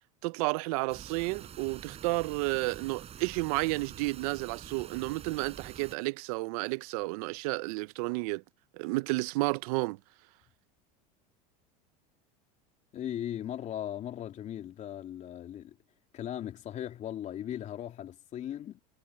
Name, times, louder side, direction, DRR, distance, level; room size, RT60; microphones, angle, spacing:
voice 1, 0.2-8.4 8.7-10.0, right 24 dB, 70° right, 0.6 m, -31 dB
sound 1, 0.9-6.0, right 9 dB, 30° right, 4.9 m, -47 dB
voice 2, 12.9-15.8 16.1-18.8, left 11 dB, 40° left, 3.3 m, -38 dB
supercardioid pair, 120°, 20 cm